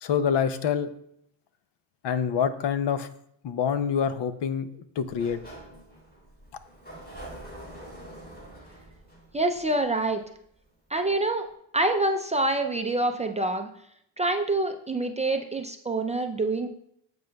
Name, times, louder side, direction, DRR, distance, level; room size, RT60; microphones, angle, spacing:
voice 1, 0.0-0.9 2.0-3.1 3.4-5.4, left 7 dB, 60° left, 11 dB, 0.7 m, -26 dB
Sliding door, 5.0-10.7, right 1 dB, 20° left, 3.5 m, -46 dB
voice 2, 9.3-10.2 10.9-11.5 11.7-13.7 14.2-16.7, right 2 dB, 15° right, 4 dB, 0.4 m, -26 dB
10.5 x 7.7 x 2.3 m, 0.72 s
cardioid pair, 125°, 47 cm